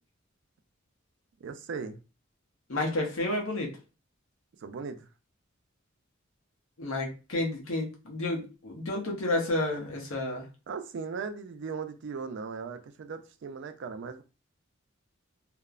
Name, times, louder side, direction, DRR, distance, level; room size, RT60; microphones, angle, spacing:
voice 1, 1.4-2.0 4.6-5.1 10.7-14.2, right 5 dB, 60° right, 0.4 m, -38 dB
voice 2, 2.7-3.7 6.8-10.5, left 2 dB, 80° left, 0.8 m, -31 dB
3.0 x 2.0 x 2.4 m
head